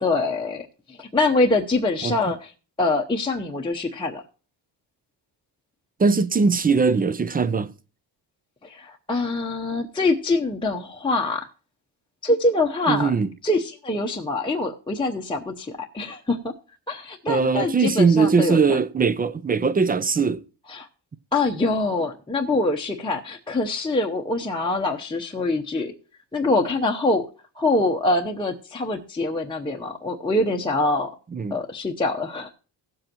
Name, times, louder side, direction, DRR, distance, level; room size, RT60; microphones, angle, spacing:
voice 1, 0.0-2.5 2.8-4.2 8.6-11.5 12.2-13.1 13.4-16.5 16.9-18.8 20.7-20.9 21.3-25.9 26.3-27.3 27.6-31.1 31.5-32.5, left 2 dB, 10° left, 0.8 m, -24 dB
voice 2, 6.0-7.7 12.9-13.3 17.3-20.4 31.3-31.6, right 5 dB, 20° right, 0.4 m, -20 dB
17.5 x 7.7 x 2.9 m
cardioid pair, 115°, 45 cm